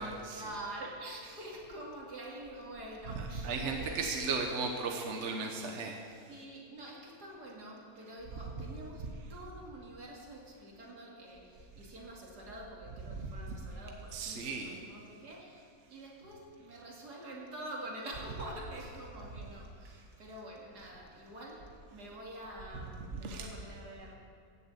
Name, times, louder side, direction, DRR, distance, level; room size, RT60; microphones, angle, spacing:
voice 1, 0.0-4.0 6.3-24.2, right 1 dB, 65° right, -2 dB, 2.9 m, -46 dB
voice 2, 3.1-6.0 14.1-14.8 23.2-23.5, right 4 dB, 45° right, 2 dB, 1.2 m, -35 dB
15.5 x 7.1 x 8.4 m, 2.4 s
omnidirectional pair, 1.9 m